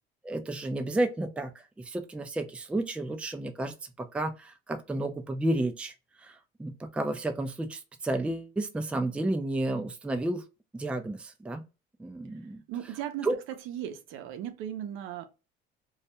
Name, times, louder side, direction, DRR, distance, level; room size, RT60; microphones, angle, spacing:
voice 1, 0.2-10.4 10.7-11.6 12.0-12.6 13.2-13.4, right 1 dB, 5° right, 0.3 m, -32 dB
voice 2, 12.7-13.3 13.7-15.3, right 10 dB, 85° right, 0.6 m, -36 dB
2.3 x 2.1 x 2.8 m
cardioid pair, 100°, 20 cm